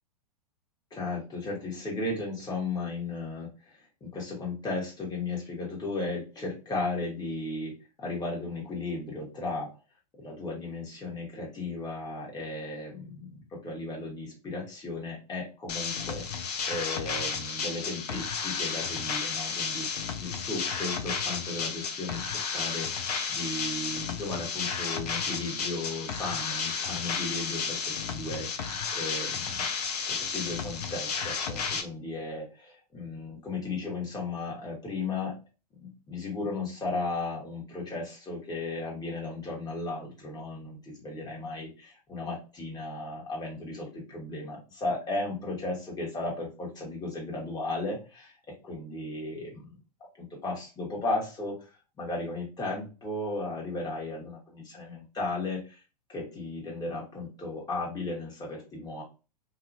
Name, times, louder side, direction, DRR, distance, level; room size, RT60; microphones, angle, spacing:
voice 1, 0.9-3.5 4.0-9.7 10.2-19.9 20.2-22.9 23.3-29.5 30.1-35.4 35.8-48.3 48.6-49.7 50.2-51.6 52.0-55.8 56.1-59.0, left 2 dB, 20° left, -3 dB, 1.3 m, -35 dB
sound 1, 15.7-31.8, left 5 dB, 70° left, 0.6 m, -32 dB
2.7 x 2.4 x 2.6 m, 0.32 s
hypercardioid pair, 100°, 21 cm